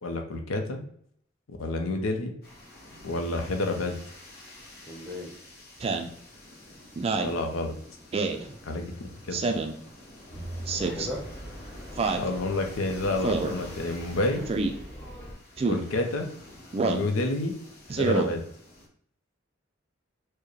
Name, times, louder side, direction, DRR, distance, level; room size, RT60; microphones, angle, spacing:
voice 1, 0.0-0.8 1.5-2.3 3.0-4.0 7.2-7.7 8.6-9.4 12.2-14.4 15.6-16.3 16.8-17.5 17.9-18.4, left 2 dB, 85° left, 4 dB, 0.6 m, -29 dB
sound 1, 2.4-18.9, left 1 dB, 50° left, 1.1 m, -49 dB
voice 2, 4.9-5.3 8.3-8.6 10.7-11.3 11.6-11.7 14.3-14.5, left 1 dB, ahead, -2 dB, 0.8 m, -38 dB
Speech synthesizer, 5.8-6.1 7.0-7.4 8.1-8.4 9.3-9.8 10.7-11.1 12.0-12.3 13.2-13.5 14.5-14.7 15.6-15.8 16.7-17.1 17.9-18.3, right 4 dB, 30° right, 0.3 m, -27 dB
sound 2, 10.3-15.3, equal, 30° left, 0.9 m, -42 dB
4.6 x 2.1 x 3.1 m, 0.65 s
head